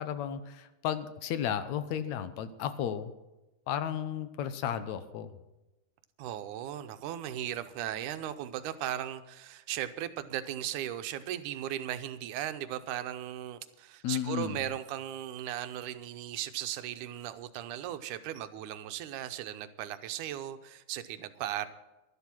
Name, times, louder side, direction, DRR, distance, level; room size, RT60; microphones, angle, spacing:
voice 1, 0.0-3.1 3.7-5.3 14.0-14.7, left 9 dB, 75° left, 12 dB, 2.0 m, -34 dB
voice 2, 6.2-21.7, right 11 dB, 85° right, 11 dB, 2.2 m, -37 dB
12.0 x 12.0 x 6.0 m, 1.0 s
omnidirectional pair, 3.5 m